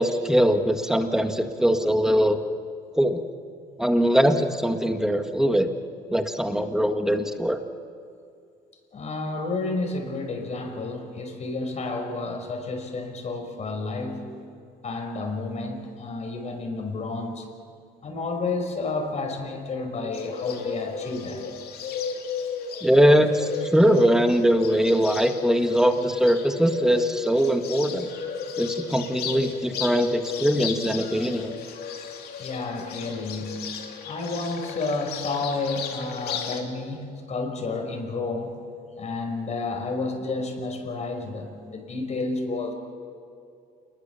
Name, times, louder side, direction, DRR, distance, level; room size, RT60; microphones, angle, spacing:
voice 1, 0.0-2.4 3.0-3.2 3.8-5.7 6.1-7.6 22.8-28.1 28.6-31.5, equal, 5° right, 6 dB, 1.9 m, -21 dB
voice 2, 8.9-14.3 14.8-17.5 18.0-21.5 32.4-33.6 34.0-38.6 39.0-42.7, left 3 dB, 40° left, 4 dB, 5.3 m, -30 dB
Bird, 20.1-36.6, left 6 dB, 70° left, 3.1 m, -34 dB
28.0 x 21.5 x 7.1 m, 2.4 s
cardioid pair, 110°, 17 cm